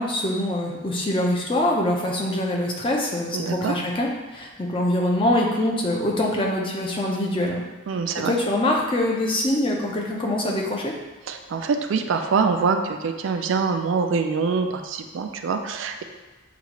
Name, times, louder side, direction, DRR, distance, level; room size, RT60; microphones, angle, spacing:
voice 1, 0.0-7.6 8.2-10.9, left 1 dB, 25° left, -1 dB, 0.6 m, -24 dB
voice 2, 3.3-3.8 7.9-8.3 11.3-16.0, right 5 dB, 70° right, 6 dB, 0.3 m, -24 dB
6.9 x 2.4 x 2.9 m, 1.2 s
head